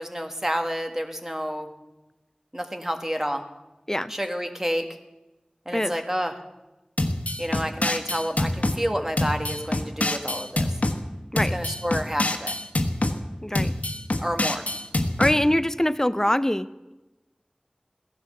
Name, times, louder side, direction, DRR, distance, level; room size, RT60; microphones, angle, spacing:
voice 1, 0.0-1.7 2.5-3.4 4.1-4.8 5.6-6.4 7.4-10.8 11.5-12.5 14.2-14.6, equal, 15° right, 5 dB, 1.6 m, -29 dB
sound 1, 7.0-8.8 9.2-11.0 11.4-13.2 13.6-15.4, left 1 dB, 75° left, 1.2 m, -25 dB
voice 2, 13.4-13.7 15.2-16.9, left 1 dB, 20° left, 14 dB, 0.6 m, -23 dB
16.0 x 11.0 x 6.7 m, 1.1 s
wide cardioid pair, 40°, 3 cm